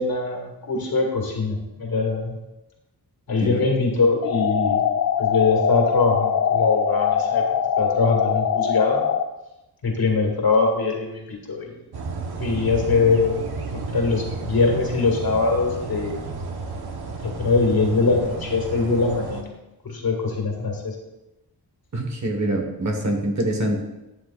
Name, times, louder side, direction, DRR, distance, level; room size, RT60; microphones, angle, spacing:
voice 1, 0.0-2.4 3.3-4.9 5.2-7.4 7.8-9.0 9.8-11.8 12.4-13.5 13.7-16.1 17.2-19.5 19.8-20.9, left 4 dB, 65° left, 0 dB, 2.1 m, -22 dB
sound 1, 4.2-9.2, left 8 dB, 50° left, 0.4 m, -22 dB
sound 2, 11.9-19.4, right 4 dB, 75° right, 1.2 m, -32 dB
voice 2, 21.9-23.8, right 1 dB, 45° right, 3 dB, 1.4 m, -25 dB
12.5 x 9.1 x 2.5 m, 0.98 s
wide cardioid pair, 175°, 39 cm